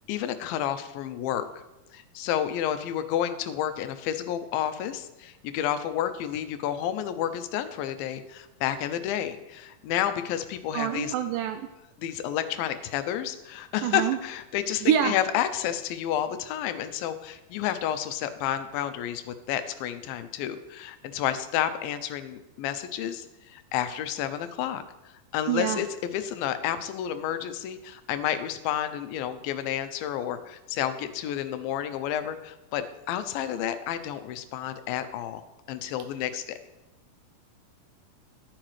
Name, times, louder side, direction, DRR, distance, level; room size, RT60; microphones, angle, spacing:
voice 1, 0.1-1.6 1.9-11.1 12.0-24.8 25.3-35.4 35.7-36.6, left 10 dB, 85° left, 10 dB, 2.4 m, -30 dB
voice 2, 10.7-11.7 13.8-14.2 14.8-15.1 25.5-25.8, right 10 dB, 80° right, 7 dB, 1.9 m, -26 dB
11.5 x 8.8 x 3.2 m, 0.98 s
omnidirectional pair, 4.1 m